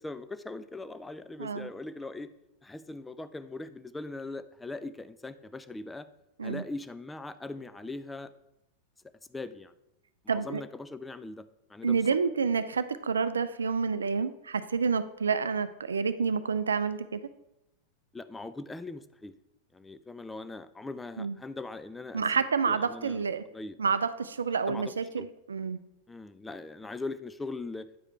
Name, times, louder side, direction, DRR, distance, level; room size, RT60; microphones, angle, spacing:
voice 1, 0.0-2.3 2.6-6.1 6.4-8.3 9.3-9.7 10.2-11.4 11.7-12.0 18.1-19.3 19.7-23.8 24.7-25.3 26.1-27.9, left 2 dB, 10° left, 12 dB, 0.3 m, -40 dB
voice 2, 10.3-10.6 11.8-17.2 21.2-21.4 22.1-23.4 23.8-25.8, right 5 dB, 70° right, 13 dB, 0.4 m, -29 dB
9.0 x 4.9 x 4.3 m, 0.88 s
figure-of-eight pair, 90°, 0 cm